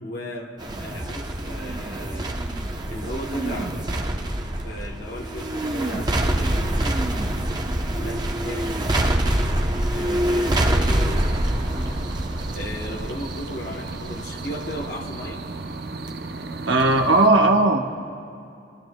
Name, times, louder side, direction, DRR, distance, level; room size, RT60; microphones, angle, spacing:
voice 1, 0.0-2.4 2.9-3.8 4.6-7.0 7.9-8.9 9.9-11.4 12.5-15.4, equal, 55° left, 0 dB, 0.9 m, -35 dB
sound 1, 0.6-16.1 16.4-16.5, right 1 dB, 25° right, 0.7 m, -25 dB
sound 2, 10.7-17.3, right 3 dB, 60° right, 0.6 m, -35 dB
voice 2, 16.7-17.9, right 2 dB, 85° right, 4 dB, 0.9 m, -17 dB
25.0 x 14.0 x 2.2 m, 2.6 s
head